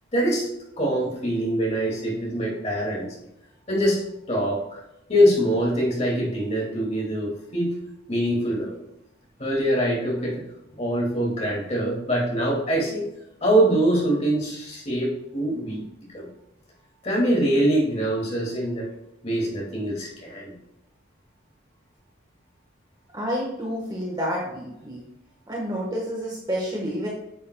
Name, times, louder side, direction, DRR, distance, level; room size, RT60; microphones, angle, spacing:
voice 1, 0.1-0.5 0.8-3.2 3.7-4.8 5.1-7.8 8.1-8.8 9.4-10.4 10.7-13.1 13.4-15.8 16.1-16.3 17.0-18.9 19.2-20.5, right 1 dB, 35° left, -3 dB, 2.4 m, -24 dB
voice 2, 23.1-25.0 25.5-27.1, equal, 20° right, -3 dB, 1.4 m, -29 dB
9.8 x 7.4 x 2.3 m, 0.86 s
head